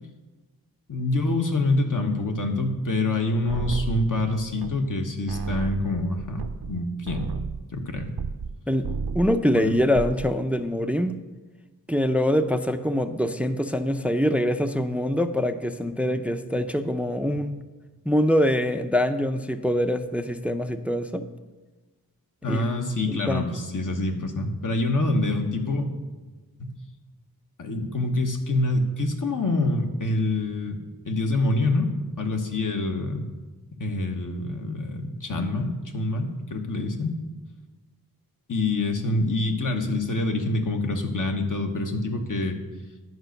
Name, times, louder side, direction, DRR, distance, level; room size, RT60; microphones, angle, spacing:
voice 1, 0.9-7.3 7.7-8.1 9.5-9.7 22.4-25.9 26.6-26.7 27.6-30.8 31.1-31.9 32.2-33.2 33.8-37.1 38.5-42.6, left 2 dB, 55° left, 4 dB, 1.3 m, -26 dB
sound 1, 3.5-5.0 5.3-8.6 8.8-9.4 9.7-10.3, right 5 dB, 75° right, 0.7 m, -32 dB
voice 2, 9.1-11.1 11.9-17.6 18.0-21.2 22.5-22.7 23.1-23.5, equal, 5° right, 10 dB, 0.5 m, -24 dB
11.0 x 5.2 x 6.6 m, 1.2 s
wide cardioid pair, 55°, 38 cm